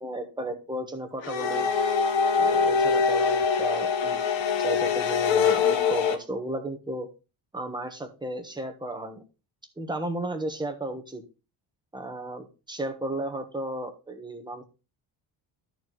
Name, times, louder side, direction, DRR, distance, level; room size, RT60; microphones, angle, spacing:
voice 1, 0.0-1.7 2.4-4.2 4.6-7.1 7.5-9.2 9.8-11.2 11.9-14.6, right 1 dB, 10° right, 4 dB, 1.3 m, -34 dB
sound 1, 1.2-6.1, left 6 dB, 70° left, 1.4 m, -23 dB
13.0 x 4.7 x 3.9 m, 0.30 s
cardioid pair, 160°, 48 cm